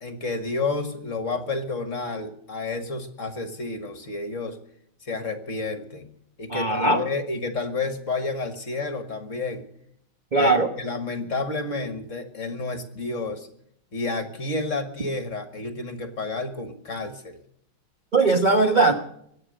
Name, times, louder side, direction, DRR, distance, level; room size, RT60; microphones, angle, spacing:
voice 1, 0.0-4.6 5.0-6.1 6.4-9.6 10.4-13.5 13.9-17.4, left 3 dB, 40° left, 9 dB, 1.6 m, -30 dB
voice 2, 6.5-7.0 10.3-10.7 18.1-18.9, right 3 dB, 35° right, 5 dB, 0.8 m, -19 dB
23.5 x 8.8 x 6.3 m, 0.72 s
omnidirectional pair, 2.4 m